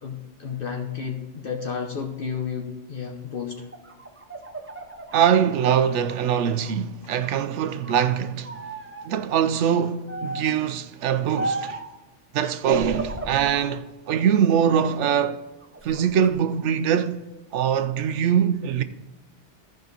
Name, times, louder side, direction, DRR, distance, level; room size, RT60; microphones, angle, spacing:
voice 1, 0.0-3.6, left 6 dB, 55° left, 1.0 m, -32 dB
sound 1, 3.6-6.8 7.2-8.0 8.4-9.1 10.1-10.6 11.4-11.9 12.7-13.7 14.2-15.2 15.6-16.3, right 2 dB, 15° right, 0.5 m, -35 dB
voice 2, 5.1-8.6 9.0-11.8 12.3-15.4 15.8-18.8, right 8 dB, 90° right, 0.9 m, -23 dB
14.0 x 5.3 x 3.9 m
omnidirectional pair, 1.2 m